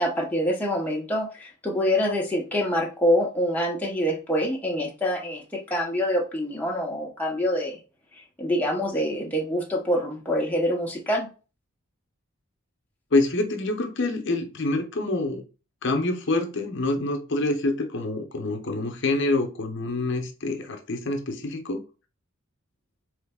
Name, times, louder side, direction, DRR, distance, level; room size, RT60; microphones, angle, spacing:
voice 1, 0.0-5.4 5.7-7.8 8.4-11.3, equal, 10° left, -2 dB, 0.7 m, -25 dB
voice 2, 13.1-15.4 15.8-21.8, left 2 dB, 55° left, 4 dB, 0.7 m, -26 dB
3.9 x 3.2 x 3.5 m, 0.33 s
head